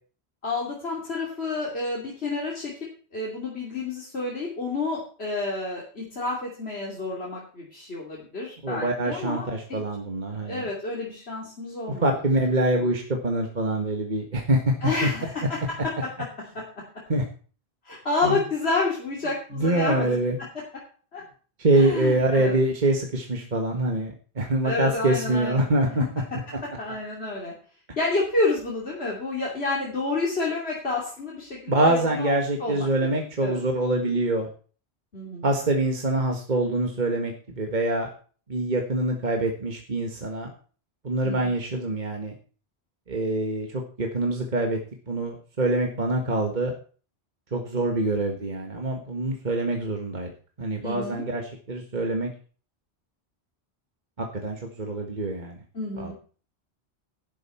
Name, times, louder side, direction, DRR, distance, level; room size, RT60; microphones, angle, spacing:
voice 1, 0.4-2.7 3.1-9.8 10.4-12.1 12.7-12.9 14.8-16.1 17.8-20.5 21.1-21.2 21.7-22.6 24.6-25.7 26.0-26.1 26.8-27.5 28.0-33.6 35.1-35.5 41.2-41.5 50.8-51.2 55.7-56.1, left 3 dB, 75° left, -4 dB, 3.2 m, -29 dB
voice 2, 8.6-10.7 12.0-14.7 15.0-15.1 17.1-17.2 18.2-18.4 19.5-20.4 21.6-26.0 31.7-34.5 35.4-38.1 38.5-40.5 41.0-42.3 43.1-44.8 45.1-46.7 47.5-50.3 50.6-52.3 54.2-55.6 56.0-56.1, right 2 dB, 45° right, 2 dB, 1.8 m, -25 dB
12.0 x 11.0 x 4.5 m, 0.39 s
omnidirectional pair, 1.1 m